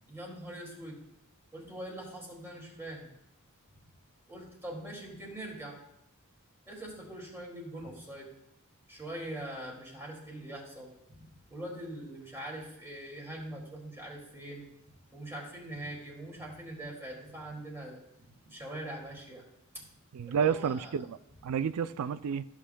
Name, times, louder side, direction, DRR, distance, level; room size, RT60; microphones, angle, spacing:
voice 1, 0.1-1.0 1.5-3.1 4.3-5.8 6.7-8.3 8.9-11.2 11.5-14.7 15.1-18.0 18.3-19.4 19.7-19.8 20.3-21.0, right 1 dB, 10° right, 2.3 m, -42 dB
voice 2, 20.1-21.2 21.4-22.5, right 7 dB, 85° right, 0.4 m, -30 dB
14.0 x 7.3 x 2.2 m
head